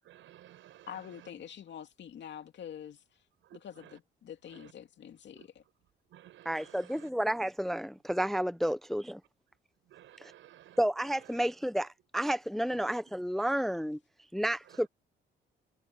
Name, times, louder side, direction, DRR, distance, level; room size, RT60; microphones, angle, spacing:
voice 1, 0.0-1.6 2.4-2.5 3.4-4.0 4.5-4.7 5.3-7.1 8.6-8.8 9.5-11.4 11.8-11.9 12.6-12.8 13.4-13.5 14.3-14.9, right 13 dB, 80° right, 5.2 m, -57 dB
voice 2, 0.9-3.0 3.6-3.7 4.2-5.4, left 9 dB, 65° left, 2.6 m, -45 dB
voice 3, 6.5-9.2 10.8-14.0 14.3-14.9, equal, ahead, 0.6 m, -31 dB
cardioid pair, 90°, 20 cm